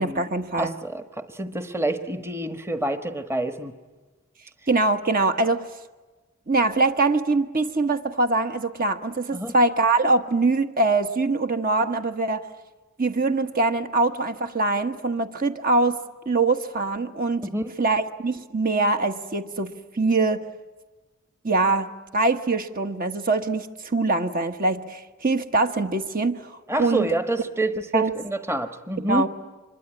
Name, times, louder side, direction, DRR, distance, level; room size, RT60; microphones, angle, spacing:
voice 1, 0.0-0.7 4.7-5.7 6.5-12.5 13.0-16.0 16.2-17.5 17.8-20.4 21.4-27.1 27.9-28.1 29.1-29.3, right 3 dB, 40° right, 7 dB, 1.3 m, -23 dB
voice 2, 0.6-3.7 9.3-9.5 17.4-17.7 26.7-29.3, right 1 dB, 10° right, 8 dB, 1.3 m, -27 dB
26.0 x 22.5 x 9.9 m, 1.2 s
head